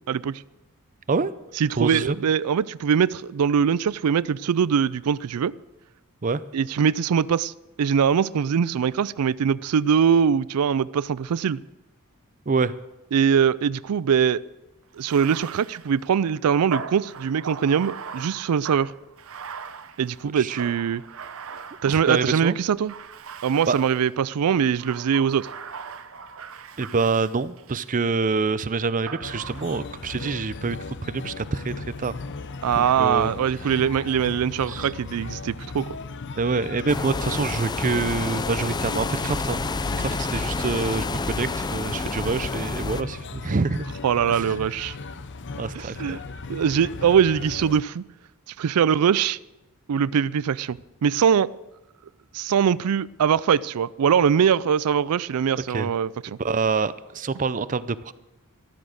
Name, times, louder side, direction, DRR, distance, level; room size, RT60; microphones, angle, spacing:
voice 1, 0.1-0.4 1.6-5.5 6.5-7.5 7.8-11.6 13.1-14.4 15.0-18.9 20.0-21.0 21.8-22.9 23.4-25.5 32.6-36.0 44.0-45.0 45.7-46.2 46.5-48.0 48.6-49.4 49.9-51.5 52.3-56.1, right 7 dB, 85° right, 20 dB, 0.4 m, -22 dB
voice 2, 1.8-2.2 6.2-6.4 12.5-12.7 20.3-20.5 21.9-22.6 23.7-23.8 26.8-32.1 32.7-33.3 34.7-34.9 36.4-39.7 40.0-43.9 44.3-44.4 45.6-46.2 55.5-55.9 56.3-58.1, right 4 dB, 35° right, 16 dB, 0.5 m, -26 dB
Bathtub (filling or washing), 15.0-22.3 22.9-24.2 24.7-27.9 29.1-30.0, right 5 dB, 65° right, 0.8 m, -39 dB
sound 1, 29.2-47.8, left 4 dB, 55° left, 0.8 m, -37 dB
sound 2, 36.9-43.0, left 3 dB, 20° left, 0.4 m, -29 dB
14.0 x 12.5 x 6.4 m, 1.0 s
head